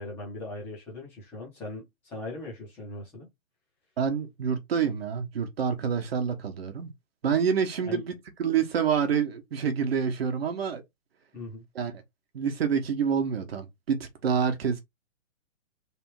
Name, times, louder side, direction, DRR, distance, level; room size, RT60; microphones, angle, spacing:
voice 1, 0.0-3.3 7.8-8.0 11.3-11.6, left 2 dB, 5° left, 0.7 m, -39 dB
voice 2, 4.0-6.9 7.2-8.1 8.4-10.8 11.7-11.9 12.3-14.8, right 7 dB, 50° right, 1.1 m, -27 dB
3.4 x 2.5 x 4.5 m
hypercardioid pair, 165°, 40 cm